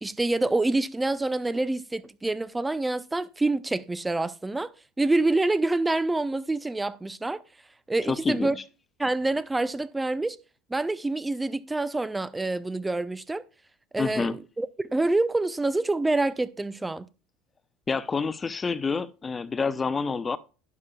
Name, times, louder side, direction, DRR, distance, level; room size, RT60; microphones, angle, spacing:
voice 1, 0.0-4.7 5.0-7.4 7.9-8.5 9.0-10.4 10.7-13.4 13.9-17.1, right 2 dB, 10° right, 0.6 m, -26 dB
voice 2, 8.1-8.5 14.0-14.4 17.9-20.4, left 4 dB, 25° left, 0.7 m, -28 dB
12.0 x 9.6 x 2.3 m
hypercardioid pair, 75°, 0 cm